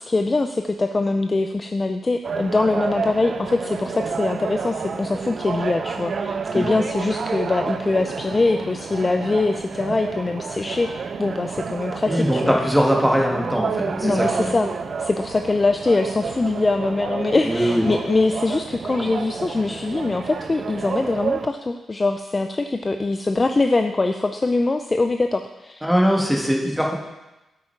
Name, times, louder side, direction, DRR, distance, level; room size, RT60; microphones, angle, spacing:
voice 1, 0.0-12.6 14.0-14.7 15.0-25.8, left 3 dB, 25° left, 6 dB, 0.4 m, -23 dB
sound 1, 2.2-21.5, right 5 dB, 45° right, 0.5 m, -30 dB
voice 2, 12.1-14.5 17.4-17.9 25.8-27.0, equal, ahead, -1 dB, 1.6 m, -21 dB
8.6 x 8.5 x 4.6 m, 1.0 s
wide cardioid pair, 135°, 0 cm